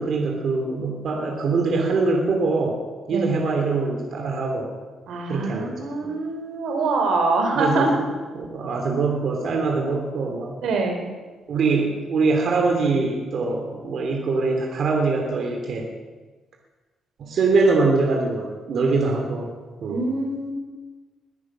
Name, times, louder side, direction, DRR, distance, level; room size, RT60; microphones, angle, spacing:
voice 1, 0.0-2.8 3.1-4.7 5.3-5.8 7.5-7.9 8.3-10.5 11.5-15.9 17.2-19.5 19.8-20.1, right 3 dB, 60° right, 1 dB, 2.7 m, -23 dB
voice 2, 5.1-8.0 10.6-11.0 19.9-20.5, right 3 dB, 80° right, 3 dB, 3.2 m, -24 dB
21.5 x 9.0 x 6.1 m, 1.3 s
cardioid pair, 90°, 0 cm